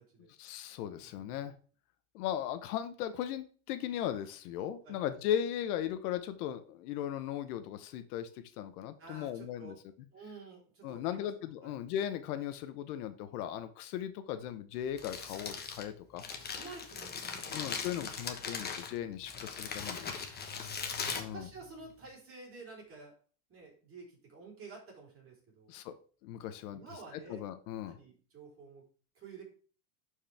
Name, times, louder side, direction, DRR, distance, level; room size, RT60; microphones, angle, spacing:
voice 1, 0.4-1.5 2.1-8.3 8.6-9.7 10.8-16.2 17.5-20.1 21.2-21.5 25.7-25.9 26.2-26.8 27.3-28.0, left 10 dB, 70° left, 10 dB, 0.9 m, -37 dB
voice 2, 1.0-1.5 4.8-5.0 9.0-9.8 10.1-11.3 11.6-11.7 16.3-17.9 19.8-20.8 21.1-23.1 23.5-25.7 26.7-27.4 27.8-28.8 29.1-29.4, right 4 dB, 30° right, -2 dB, 4.0 m, -51 dB
Crumpling crinkling, 14.8-22.1, left 5 dB, 20° left, 1.1 m, -40 dB
11.5 x 4.8 x 3.4 m, 0.41 s
supercardioid pair, 135°, 46 cm